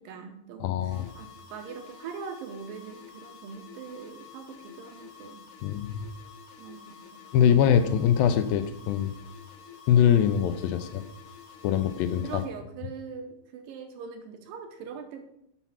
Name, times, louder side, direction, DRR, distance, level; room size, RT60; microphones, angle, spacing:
voice 1, 0.0-5.5 6.6-7.0 12.2-15.2, right 6 dB, 75° right, 6 dB, 2.3 m, -42 dB
voice 2, 0.6-1.1 5.6-6.1 7.3-9.1 9.9-11.1 11.6-12.4, left 9 dB, 80° left, 10 dB, 2.1 m, -23 dB
sound 1, 0.9-12.5, left 7 dB, 60° left, 2.5 m, -49 dB
7.2 x 6.0 x 5.6 m, 0.77 s
omnidirectional pair, 4.5 m